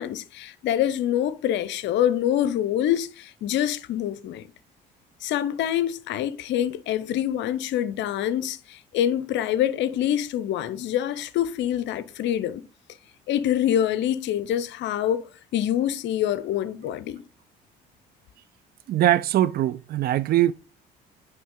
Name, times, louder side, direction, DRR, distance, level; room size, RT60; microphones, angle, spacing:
voice 1, 0.0-4.5 5.2-12.6 13.3-17.2, left 11 dB, 60° left, 0.6 m, -25 dB
voice 2, 18.9-20.5, right 13 dB, 45° right, 0.4 m, -21 dB
9.3 x 3.3 x 3.7 m
hypercardioid pair, 55°, 21 cm